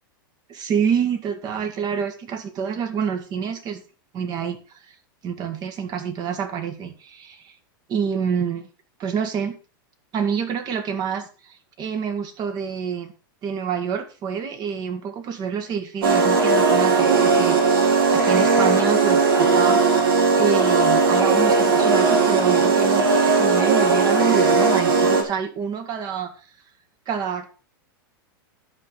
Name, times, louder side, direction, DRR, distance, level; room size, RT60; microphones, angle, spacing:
voice 1, 0.5-3.8 4.1-4.8 5.2-7.5 7.9-8.6 9.0-9.5 10.1-13.1 13.4-19.8 20.4-26.3 27.1-27.5, right 7 dB, 35° right, 8 dB, 1.8 m, -27 dB
sound 1, 16.0-25.2, right 4 dB, 85° right, 2.2 m, -18 dB
12.0 x 5.3 x 4.7 m, 0.36 s
hypercardioid pair, 125°, 12 cm